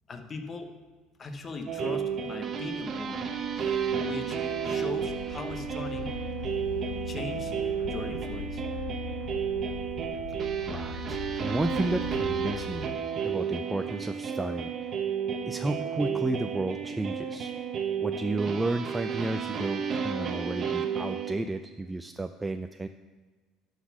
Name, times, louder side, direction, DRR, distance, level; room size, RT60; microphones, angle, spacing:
voice 1, 0.1-0.7 1.2-3.2 4.0-4.4 4.6-6.1 7.0-7.5 7.8-8.6, left 3 dB, 30° left, 6 dB, 1.0 m, -39 dB
sound 1, 1.4-13.0, left 10 dB, 90° left, 0.6 m, -43 dB
sound 2, 1.7-21.3, right 7 dB, 40° right, 0.8 m, -32 dB
sound 3, 5.0-12.5, left 4 dB, 50° left, 3.1 m, -45 dB
voice 2, 10.3-14.7 15.5-17.5 18.0-22.9, right 2 dB, 10° right, 7 dB, 0.3 m, -32 dB
11.5 x 4.1 x 6.0 m, 1.3 s
cardioid pair, 120°, 0 cm